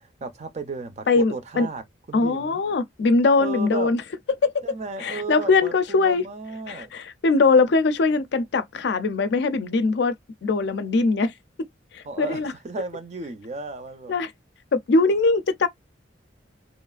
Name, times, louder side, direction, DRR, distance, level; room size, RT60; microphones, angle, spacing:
voice 1, 0.2-2.6 3.4-3.9 4.6-6.9 12.0-14.1, right 3 dB, 35° right, 0.5 m, -34 dB
voice 2, 1.1-1.7 2.1-4.0 4.4-4.6 5.0-6.2 6.7-10.1 10.4-11.3 11.9-12.5 14.1-14.3 14.7-15.7, left 3 dB, 65° left, 0.4 m, -21 dB
2.9 x 2.4 x 2.3 m
head